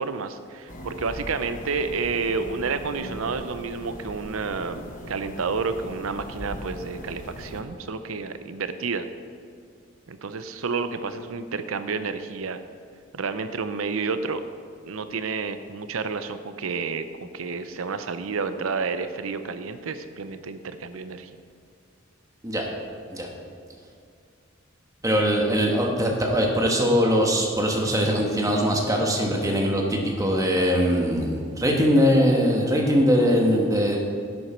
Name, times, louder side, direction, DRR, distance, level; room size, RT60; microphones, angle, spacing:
voice 1, 0.0-9.1 10.1-12.6 13.1-14.4 14.9-21.3, right 4 dB, 85° right, 10 dB, 0.6 m, -30 dB
sound 1, 0.7-7.6, equal, 40° left, 1.1 m, -39 dB
voice 2, 25.0-34.0, equal, 15° right, 0 dB, 1.3 m, -21 dB
11.0 x 8.0 x 4.4 m, 2.3 s
head